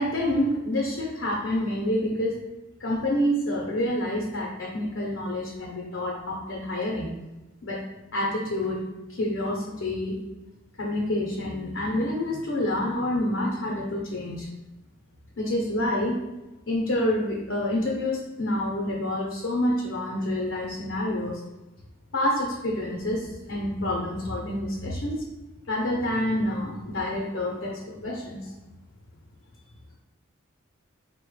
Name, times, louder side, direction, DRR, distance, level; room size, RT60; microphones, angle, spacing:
voice 1, 0.0-2.4 2.8-7.1 7.6-7.8 8.1-8.8 9.1-10.2 10.8-14.5 15.4-16.2 16.7-21.4 22.1-25.2 25.7-28.5, left 1 dB, 60° left, -3 dB, 0.6 m, -28 dB
4.1 x 2.1 x 3.1 m, 1.0 s
head